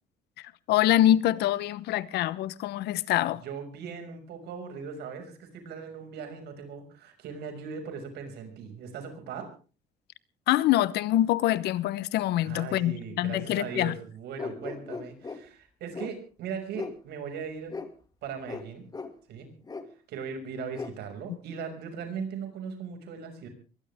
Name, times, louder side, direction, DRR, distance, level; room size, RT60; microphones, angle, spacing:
voice 1, 0.4-3.4 10.5-13.9, left 13 dB, 80° left, 1.0 m, -25 dB
voice 2, 3.4-9.5 12.4-17.7 18.2-18.9 19.3-19.5 20.1-23.5, right 6 dB, 75° right, 6.2 m, -39 dB
sound 1, 14.4-15.4 15.9-16.1 16.7-17.0 17.7-17.9 18.5-18.6 18.9-19.1 19.7-19.8 20.7-20.9, left 4 dB, 20° left, 2.2 m, -37 dB
22.5 x 17.5 x 3.6 m
cardioid pair, 110°, 17 cm